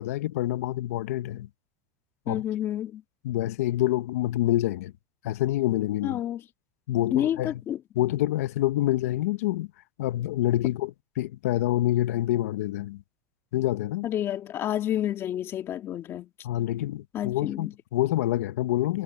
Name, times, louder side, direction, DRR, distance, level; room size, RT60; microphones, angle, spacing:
voice 1, 0.0-1.5 2.3-2.4 3.2-4.9 5.2-6.2 6.9-7.5 8.0-9.7 10.0-10.9 11.2-13.0 13.5-14.1 16.4-19.0, left 14 dB, 80° left, 1.0 m, -27 dB
voice 2, 2.3-3.0 6.0-6.4 7.1-7.8 14.0-16.3 17.1-17.7, left 11 dB, 30° left, 1.8 m, -29 dB
supercardioid pair, 145°, 8 cm